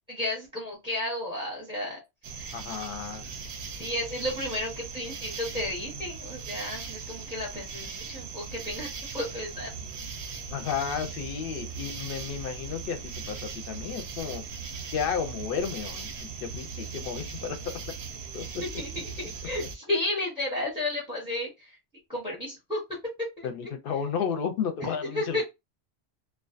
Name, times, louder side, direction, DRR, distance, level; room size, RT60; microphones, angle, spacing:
voice 1, 0.1-2.0 2.3-2.6 3.8-9.7 18.6-21.8 22.1-22.8 23.2-23.7 24.9-25.4, left 1 dB, 5° right, 0.6 m, -33 dB
sound 1, 2.2-19.8, right 5 dB, 80° right, 0.8 m, -39 dB
voice 2, 2.5-3.2 10.5-14.4 14.9-17.7 18.3-18.4 23.4-25.4, left 7 dB, 65° left, 0.7 m, -32 dB
2.4 x 2.2 x 2.4 m
omnidirectional pair, 1.1 m